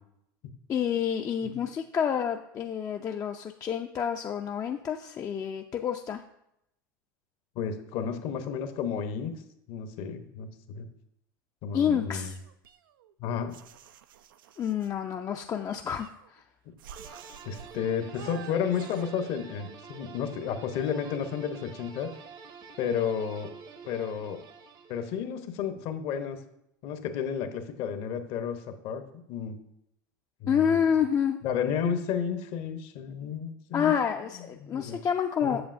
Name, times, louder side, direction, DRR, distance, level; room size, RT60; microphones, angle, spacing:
voice 1, 0.7-6.2 11.7-12.4 14.6-16.4 30.5-31.4 33.7-35.6, left 8 dB, 30° left, 4 dB, 0.4 m, -28 dB
voice 2, 7.5-9.3 9.7-10.9 11.6-12.3 13.2-13.6 17.4-22.1 22.8-23.5 23.9-24.4 24.9-26.4 26.8-29.0 29.3-29.6 30.4-30.8 31.4-33.9 34.6-35.0 35.4-35.6, left 7 dB, 55° left, 8 dB, 0.9 m, -32 dB
sound 1, 12.3-13.1 13.5-14.9 15.7-16.4 16.8-17.8 18.1-19.1, right 9 dB, 85° right, 0.4 m, -49 dB
sound 2, 17.0-25.3, right 5 dB, 40° right, 0.8 m, -48 dB
7.9 x 6.9 x 2.6 m, 0.80 s
hypercardioid pair, 95°, 11 cm